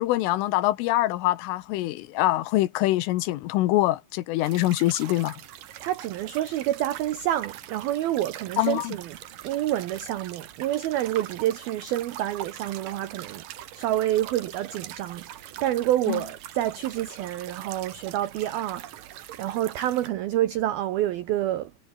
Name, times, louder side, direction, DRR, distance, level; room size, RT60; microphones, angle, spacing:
voice 1, 0.0-5.4 8.6-9.0 16.1-16.2, left 16 dB, 80° left, 3.6 m, -24 dB
sound 1, 4.4-20.1, right 12 dB, 70° right, 2.1 m, -42 dB
voice 2, 5.8-9.2 9.4-13.4 13.7-19.1 19.4-21.7, right 13 dB, 90° right, 2.1 m, -28 dB
omnidirectional pair, 5.8 m